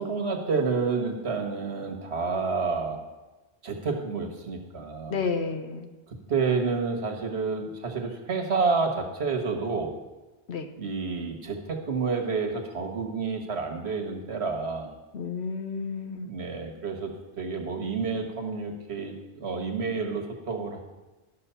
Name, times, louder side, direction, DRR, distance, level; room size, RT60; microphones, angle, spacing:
voice 1, 0.0-3.0 3.6-5.2 6.3-9.9 10.8-15.0 16.2-19.1 19.4-20.8, right 4 dB, 80° right, 3 dB, 1.6 m, -29 dB
voice 2, 5.1-5.9 10.5-10.7 15.1-16.3, left 5 dB, 80° left, 7 dB, 1.2 m, -31 dB
12.5 x 6.4 x 5.6 m, 1.2 s
omnidirectional pair, 1.1 m